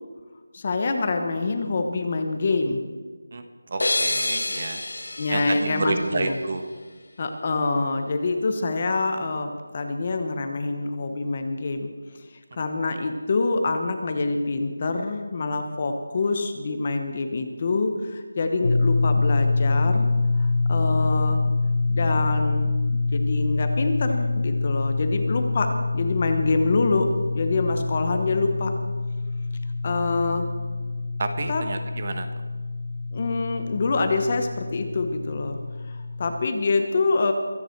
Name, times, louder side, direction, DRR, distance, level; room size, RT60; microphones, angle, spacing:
voice 1, 0.5-2.8 5.2-6.4 7.2-11.9 12.6-20.1 20.4-21.4 21.9-28.7 29.8-30.5 31.5-31.6 33.1-35.6 35.9-37.3, left 3 dB, 25° left, 6 dB, 1.0 m, -26 dB
voice 2, 3.7-4.8 5.3-6.6 31.2-32.3, right 3 dB, 30° right, 7 dB, 1.1 m, -29 dB
sound 1, 3.8-6.6, left 2 dB, 85° left, 2.0 m, -28 dB
sound 2, 18.6-36.5, left 3 dB, 45° left, 0.6 m, -26 dB
23.5 x 10.0 x 4.6 m, 1.5 s
figure-of-eight pair, 175°, 0 cm